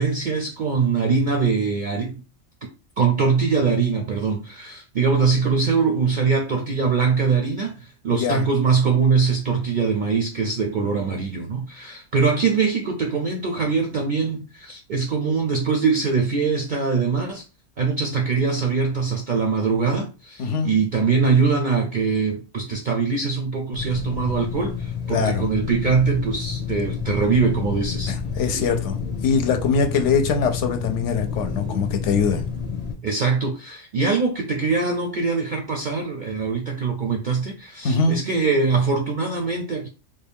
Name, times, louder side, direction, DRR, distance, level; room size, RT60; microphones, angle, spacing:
voice 1, 0.0-2.1 3.0-17.4 17.8-28.1 33.0-39.9, right 5 dB, 60° right, 0.5 m, -22 dB
voice 2, 8.1-8.4 20.4-20.7 25.1-25.5 28.1-29.0 29.2-32.4 37.8-38.2, left 5 dB, 70° left, 0.9 m, -22 dB
sound 1, 23.7-33.0, left 6 dB, 30° left, 0.8 m, -29 dB
3.4 x 2.2 x 3.5 m
omnidirectional pair, 1.3 m